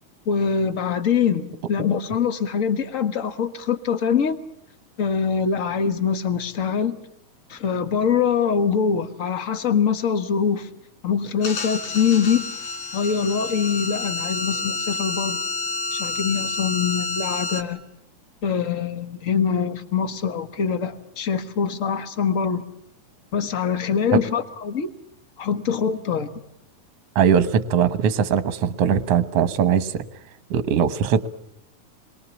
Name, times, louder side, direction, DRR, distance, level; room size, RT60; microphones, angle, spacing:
voice 1, 0.2-4.4 5.0-7.0 7.5-10.7 11.0-12.5 12.9-15.4 15.9-17.8 18.4-22.7 23.3-24.9 25.4-26.3, left 6 dB, 55° left, 10 dB, 0.8 m, -23 dB
sound 1, 11.4-17.6, left 2 dB, 80° left, 3.8 m, -29 dB
voice 2, 27.2-30.0 30.5-31.3, right 7 dB, 60° right, 12 dB, 1.9 m, -20 dB
28.5 x 22.0 x 7.1 m, 0.82 s
omnidirectional pair, 3.5 m